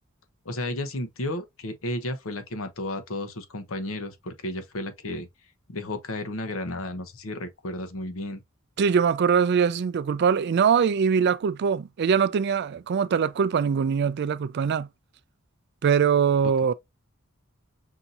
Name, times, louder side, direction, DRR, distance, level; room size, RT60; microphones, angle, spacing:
voice 1, 0.4-5.3 5.7-8.4, left 1 dB, 80° left, 0.9 m, -33 dB
voice 2, 8.8-14.9 15.8-16.7, right 6 dB, 55° right, 0.3 m, -22 dB
5.8 x 2.7 x 2.5 m
head